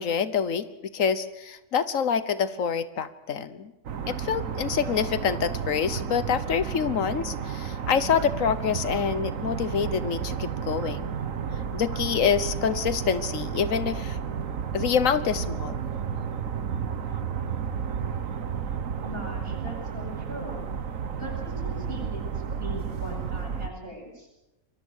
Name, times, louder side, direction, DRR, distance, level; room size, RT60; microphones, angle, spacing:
voice 1, 0.0-3.7 4.1-11.1 11.7-14.2 14.7-15.8, left 7 dB, 80° left, 14 dB, 1.5 m, -26 dB
sound 1, 3.8-23.7, right 7 dB, 80° right, 1.6 m, -32 dB
voice 2, 19.0-20.7 21.2-24.3, equal, 45° right, -1 dB, 8.3 m, -40 dB
27.0 x 22.0 x 6.5 m, 0.96 s
omnidirectional pair, 1.4 m